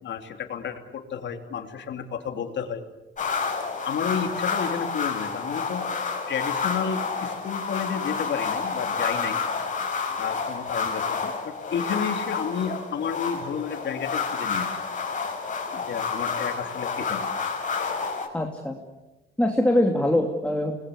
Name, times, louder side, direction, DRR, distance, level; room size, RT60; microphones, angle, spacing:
voice 1, 0.0-2.8 3.8-9.4 10.1-14.7 15.7-17.2, left 7 dB, 65° left, 7 dB, 3.0 m, -31 dB
sound 1, 3.2-18.3, left 5 dB, 40° left, 5.6 m, -29 dB
voice 2, 18.3-18.8 19.4-20.7, left 1 dB, 5° left, 2 dB, 2.9 m, -23 dB
28.0 x 21.0 x 8.4 m, 1.0 s
cardioid pair, 90°, 20 cm